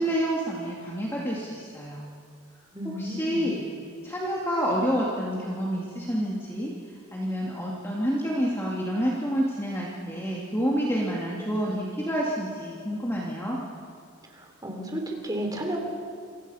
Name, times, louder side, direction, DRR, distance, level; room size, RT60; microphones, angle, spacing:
voice 1, 0.0-2.1 2.8-3.7 4.0-6.7 7.1-13.6, equal, 10° left, -5 dB, 2.3 m, -28 dB
voice 2, 2.7-3.5 14.3-15.8, equal, 15° right, 2 dB, 3.4 m, -33 dB
28.5 x 25.0 x 5.7 m, 2.3 s
head